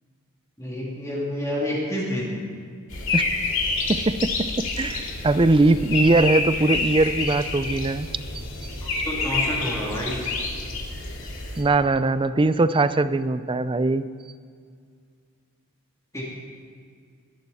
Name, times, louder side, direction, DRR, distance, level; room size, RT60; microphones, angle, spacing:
voice 1, 0.6-2.4 8.8-10.4 16.1-16.2, equal, 15° left, -5 dB, 2.9 m, -29 dB
sound 1, 2.9-11.6, left 3 dB, 65° left, 2.5 m, -28 dB
voice 2, 3.9-8.1 8.3-8.7 11.6-14.1, right 2 dB, 25° right, 13 dB, 0.5 m, -21 dB
20.5 x 12.0 x 4.3 m, 2.2 s
head